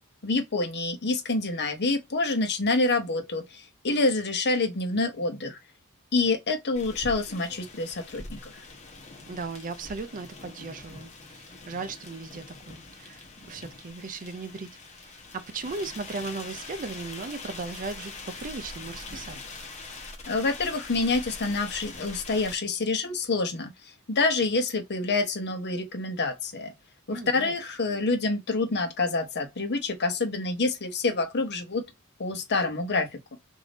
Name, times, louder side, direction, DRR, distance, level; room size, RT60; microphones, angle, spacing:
voice 1, 0.2-5.6 6.1-8.6 20.3-23.7 24.1-26.7 27.1-31.8 32.2-33.4, left 3 dB, 50° left, 0.9 m, -27 dB
sound 1, 6.7-22.6, left 3 dB, 30° left, 1.1 m, -43 dB
voice 2, 9.3-14.7 15.0-19.5 27.1-27.5, right 4 dB, 40° right, 0.5 m, -37 dB
3.5 x 2.7 x 3.9 m
head